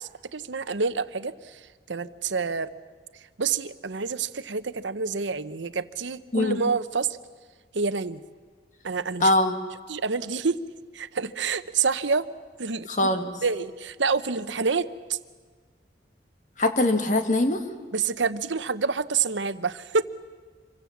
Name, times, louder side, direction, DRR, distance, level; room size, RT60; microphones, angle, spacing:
voice 1, 0.0-2.7 3.4-7.1 7.7-8.2 8.8-9.3 9.9-10.6 10.9-12.3 12.6-12.9 13.4-15.2 17.9-20.0, right 5 dB, 80° right, 13 dB, 0.9 m, -28 dB
voice 2, 9.2-9.6 12.9-13.3 16.6-17.6, left 1 dB, 40° left, 6 dB, 2.0 m, -22 dB
27.0 x 23.5 x 7.3 m, 1.5 s
head